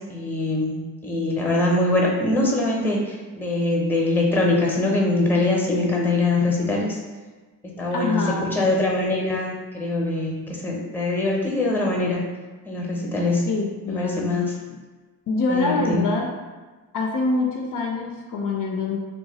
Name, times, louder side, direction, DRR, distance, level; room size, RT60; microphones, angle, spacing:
voice 1, 0.1-7.0 7.6-12.3 12.6-13.4 13.9-14.5 15.5-16.0, left 2 dB, 5° left, -1 dB, 0.8 m, -23 dB
voice 2, 7.9-8.5 13.5-14.3 15.3-16.3 16.9-19.0, left 3 dB, 55° left, 0 dB, 0.5 m, -25 dB
2.8 x 2.3 x 4.0 m, 1.3 s
cardioid pair, 90°, 38 cm